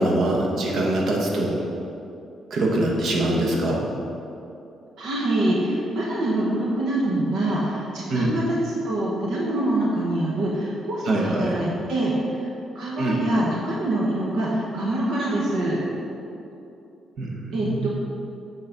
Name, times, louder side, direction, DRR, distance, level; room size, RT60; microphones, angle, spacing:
voice 1, 0.0-1.6 2.5-3.8 8.1-8.3 11.0-11.5 13.0-13.2 17.2-17.9, right 1 dB, 60° right, -2 dB, 1.3 m, -23 dB
voice 2, 5.0-15.8 17.5-17.9, right 1 dB, 80° right, -5 dB, 1.2 m, -25 dB
7.6 x 4.1 x 5.9 m, 2.8 s
cardioid pair, 90°, 0 cm